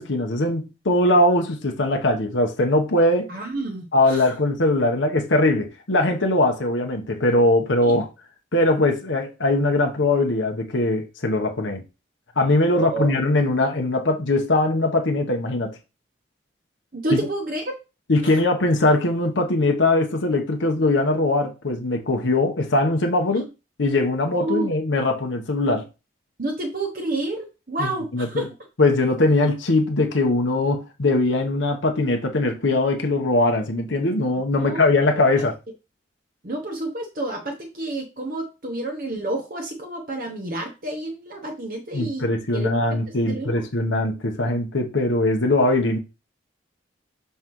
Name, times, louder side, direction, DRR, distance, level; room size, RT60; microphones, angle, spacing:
voice 1, 0.0-3.3 3.9-8.1 8.5-11.8 12.4-15.8 17.1-17.2 18.1-23.5 23.8-25.9 27.8-28.5 28.8-35.5 41.9-46.0, left 2 dB, 90° left, 1.0 m, -21 dB
voice 2, 3.3-4.3 7.8-8.0 12.7-13.1 16.9-17.7 18.2-18.3 24.3-24.7 26.4-28.5 34.6-34.9 35.4-35.5 36.4-42.3 42.5-43.6, right 2 dB, 50° right, 1.0 m, -29 dB
5.6 x 5.5 x 3.1 m
head